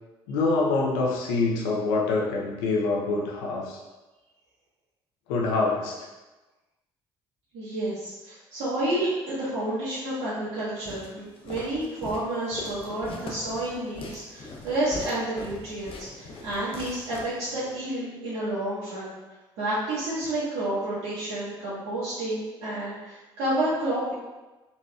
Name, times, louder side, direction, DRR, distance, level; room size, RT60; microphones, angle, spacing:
voice 1, 0.3-3.8 5.3-5.9, left 3 dB, 85° left, -2 dB, 0.7 m, -25 dB
voice 2, 7.5-19.1 19.6-24.1, right 1 dB, 70° right, -11 dB, 1.3 m, -30 dB
Walk footsteps, 10.9-17.8, left 2 dB, 50° left, 0.8 m, -41 dB
4.1 x 3.0 x 2.4 m, 1.1 s
hypercardioid pair, 55°, 12 cm